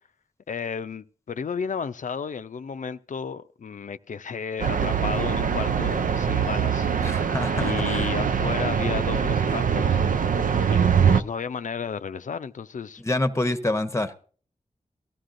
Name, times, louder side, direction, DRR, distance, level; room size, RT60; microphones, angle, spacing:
voice 1, 0.5-6.9 7.6-10.0 10.7-10.8 11.1-13.0, left 6 dB, 70° left, 0.4 m, -33 dB
sound 1, 4.6-11.2, right 7 dB, 85° right, 0.4 m, -23 dB
voice 2, 7.0-8.1 13.0-14.1, left 2 dB, 20° left, 0.8 m, -27 dB
17.5 x 13.0 x 2.5 m
wide cardioid pair, 50°, 14 cm